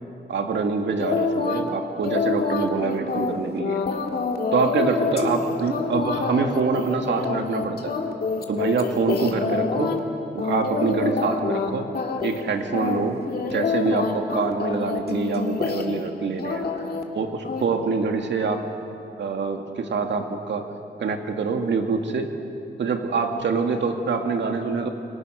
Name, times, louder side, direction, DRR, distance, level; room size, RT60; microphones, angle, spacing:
voice 1, 0.3-3.8 4.5-7.9 8.5-10.0 10.3-11.9 12.2-16.6 17.1-18.7 19.2-20.7 21.0-22.4 22.8-24.9, right 4 dB, 90° right, 4 dB, 2.3 m, -25 dB
sound 1, 1.0-1.7 2.0-10.0 10.4-11.7 11.9-12.4 12.7-16.1 16.4-17.0 17.4-17.6, left 4 dB, 60° left, 2.2 m, -26 dB
29.5 x 25.0 x 6.4 m, 2.7 s
wide cardioid pair, 160°, 18 cm